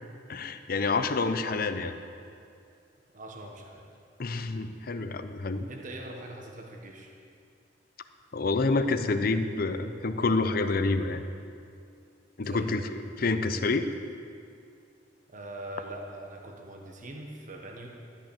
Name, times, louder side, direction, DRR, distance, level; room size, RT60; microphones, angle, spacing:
voice 1, 0.3-1.9 4.2-5.7 8.3-11.2 12.4-12.9 13.2-13.9, left 3 dB, 55° left, 9 dB, 0.6 m, -28 dB
voice 2, 3.1-3.9 5.7-7.1 12.4-12.7 15.3-17.9, right 1 dB, 45° right, 0 dB, 1.3 m, -42 dB
13.0 x 6.1 x 8.4 m, 2.4 s
head